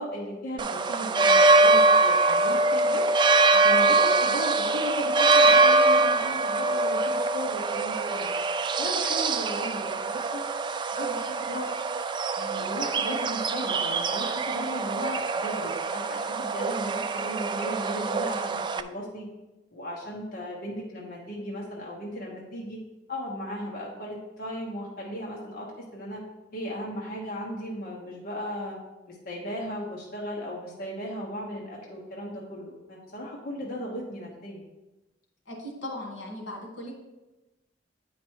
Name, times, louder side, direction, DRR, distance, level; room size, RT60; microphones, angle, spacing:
voice 1, 0.0-3.1 3.5-8.3 8.8-10.4 10.9-11.7 12.4-19.3 19.7-22.8 23.1-26.2 26.5-28.8 29.1-34.7, equal, 55° left, -3 dB, 1.2 m, -36 dB
sound 1, 0.6-18.8, right 3 dB, 25° right, 0.3 m, -23 dB
voice 2, 35.5-36.9, left 1 dB, 85° left, 0 dB, 2.1 m, -38 dB
8.8 x 5.0 x 4.6 m, 1.0 s
head